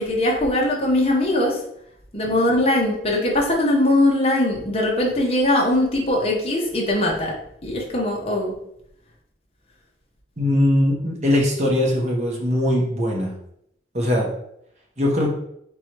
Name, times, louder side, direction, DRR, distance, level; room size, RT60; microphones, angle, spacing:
voice 1, 0.0-1.6 2.1-7.3 7.6-8.6, left 1 dB, 30° left, -2 dB, 1.1 m, -21 dB
voice 2, 10.4-13.3 13.9-14.3 15.0-15.3, left 1 dB, 40° right, -1 dB, 1.0 m, -20 dB
3.7 x 3.0 x 4.6 m, 0.74 s
head